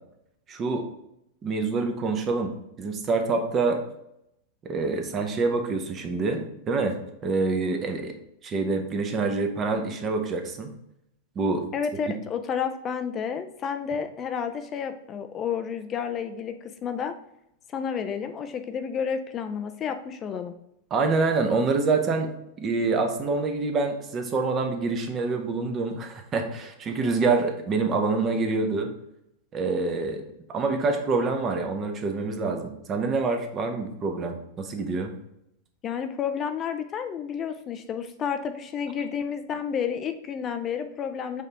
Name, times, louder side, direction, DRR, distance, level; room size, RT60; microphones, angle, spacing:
voice 1, 0.5-0.8 1.4-2.5 2.8-3.8 4.6-7.0 7.2-8.1 8.4-10.7 11.4-11.7 20.9-22.3 22.6-28.9 29.5-30.2 30.5-35.1, right 3 dB, 30° right, 5 dB, 0.8 m, -26 dB
voice 2, 11.7-17.1 17.7-20.5 35.8-41.4, left 7 dB, 35° left, 8 dB, 0.4 m, -31 dB
4.9 x 2.8 x 3.4 m, 0.80 s
hypercardioid pair, 110°, 0 cm